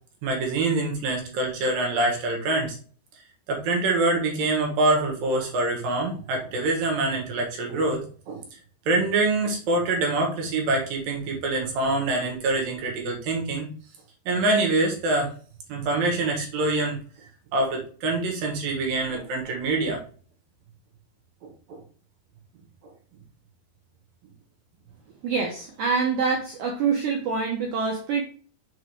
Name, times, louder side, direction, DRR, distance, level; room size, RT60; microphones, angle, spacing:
voice 1, 0.2-2.8 3.5-8.4 8.9-13.7 14.3-15.3 15.7-17.0 17.5-20.0 21.7-21.8, right 2 dB, 65° right, 0 dB, 2.9 m, -25 dB
voice 2, 25.2-28.2, right 5 dB, 90° right, 1 dB, 1.7 m, -25 dB
7.0 x 3.8 x 4.9 m, 0.43 s
omnidirectional pair, 4.9 m